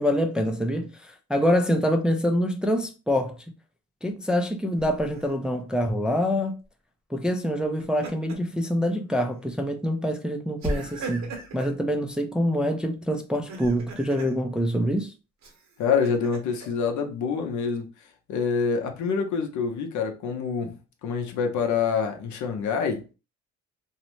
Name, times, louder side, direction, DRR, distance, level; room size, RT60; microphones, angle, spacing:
voice 1, 0.0-3.4 4.0-6.6 7.1-15.1, equal, 5° right, 0.3 m, -25 dB
Laughter, 4.8-5.3 7.6-8.6 9.0-9.1 10.6-11.8 13.3-14.3 15.4-16.7, right 1 dB, 65° right, 0.9 m, -37 dB
voice 2, 15.8-17.9 18.3-20.8 21.0-23.0, left 6 dB, 70° left, 0.6 m, -26 dB
2.6 x 2.0 x 3.0 m
cardioid pair, 90°, 30 cm